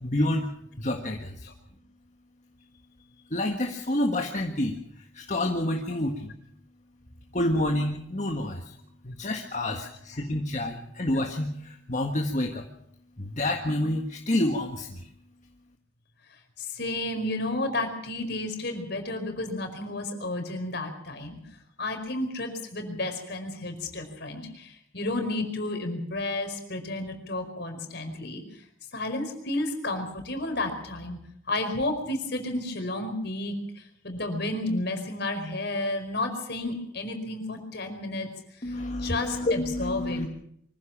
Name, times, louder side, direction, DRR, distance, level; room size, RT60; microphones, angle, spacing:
voice 1, 0.0-1.5 3.3-4.8 5.1-6.3 7.3-8.6 9.0-12.6 13.2-15.1 38.6-40.3, left 1 dB, 35° left, 2 dB, 1.7 m, -28 dB
voice 2, 16.3-21.4 21.8-28.6 28.9-31.2 31.5-38.3 38.5-40.3, left 2 dB, 55° left, 5 dB, 4.9 m, -32 dB
24.0 x 15.5 x 7.4 m, 0.70 s
head